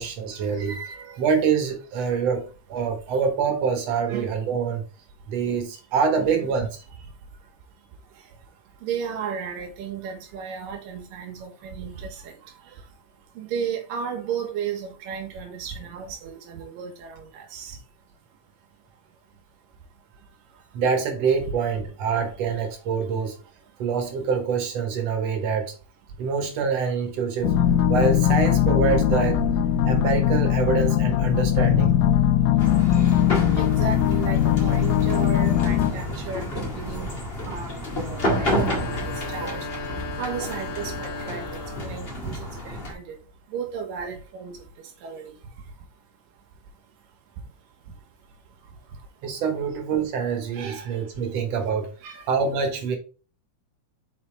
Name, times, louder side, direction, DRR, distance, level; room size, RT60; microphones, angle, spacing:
voice 1, 0.0-4.8 5.3-6.7 20.7-23.4 23.8-25.7 26.2-27.5 27.9-29.4 29.9-32.0 49.2-51.9 52.3-53.0, right 6 dB, 60° right, 2.1 m, -25 dB
voice 2, 4.1-4.4 6.1-6.5 8.8-12.3 13.4-17.8 21.4-21.5 33.5-36.5 36.7-37.2 37.5-39.7 40.2-43.2 43.5-44.6 45.0-45.3 50.5-51.0 52.0-52.2, right 7 dB, 90° right, 3.0 m, -34 dB
sound 1, 27.4-35.9, left 11 dB, 80° left, 2.1 m, -20 dB
sound 2, 32.6-42.9, left 1 dB, 25° left, 1.4 m, -30 dB
sound 3, 38.0-42.1, left 3 dB, 40° left, 2.3 m, -35 dB
5.7 x 5.3 x 3.2 m
omnidirectional pair, 3.8 m